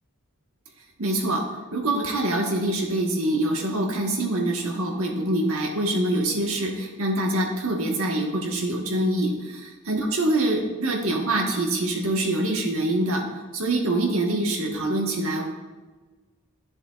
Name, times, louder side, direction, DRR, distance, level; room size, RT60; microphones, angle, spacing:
voice 1, 1.0-1.4 1.7-9.3 9.9-13.2 13.5-15.5, right 1 dB, 75° right, 1 dB, 1.3 m, -25 dB
11.0 x 7.0 x 2.4 m, 1.3 s
head